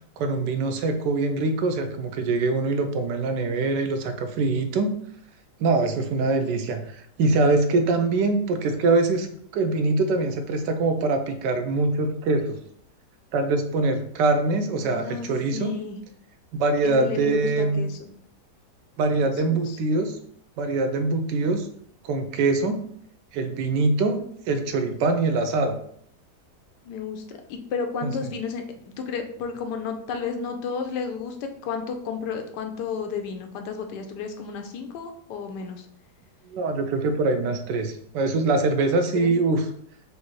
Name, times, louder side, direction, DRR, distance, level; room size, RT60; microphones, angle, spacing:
voice 1, 0.2-4.9 5.6-9.3 9.5-12.6 13.3-15.7 16.5-17.8 19.0-20.2 20.6-21.7 22.0-22.8 23.3-24.2 24.5-25.8 28.0-28.1 36.5-39.6, right 3 dB, 80° right, 7 dB, 1.2 m, -23 dB
voice 2, 14.8-16.0 16.8-18.1 19.1-19.8 24.2-24.3 26.8-35.9 39.1-39.3, left 6 dB, 80° left, 6 dB, 1.2 m, -32 dB
4.9 x 2.6 x 3.1 m, 0.65 s
omnidirectional pair, 1.9 m